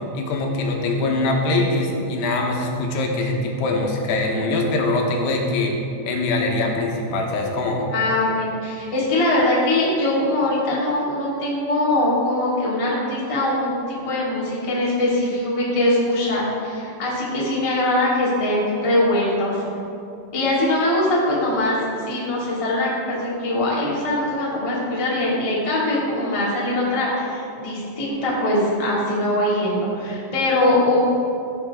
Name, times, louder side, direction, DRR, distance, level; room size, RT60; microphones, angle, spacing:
voice 1, 0.1-5.8 6.1-7.9, left 2 dB, 90° left, 1 dB, 3.2 m, -23 dB
voice 2, 7.9-19.6 20.3-31.0, left 1 dB, 20° left, -6 dB, 0.9 m, -22 dB
15.0 x 7.7 x 3.6 m, 2.7 s
omnidirectional pair, 4.7 m